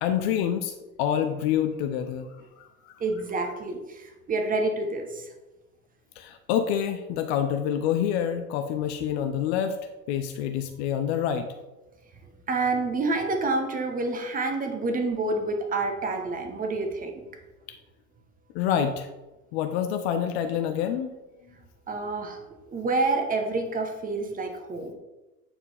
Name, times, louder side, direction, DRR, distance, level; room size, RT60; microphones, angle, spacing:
voice 1, 0.0-2.3 2.6-2.9 6.2-9.8 10.1-11.5 18.5-19.1 19.5-21.1, left 9 dB, 45° left, 7 dB, 0.6 m, -27 dB
voice 2, 3.0-5.3 12.5-17.1 21.9-22.4 22.7-25.0, right 3 dB, 20° right, 4 dB, 1.1 m, -28 dB
8.9 x 4.3 x 3.4 m, 1.1 s
figure-of-eight pair, 80°, 46 cm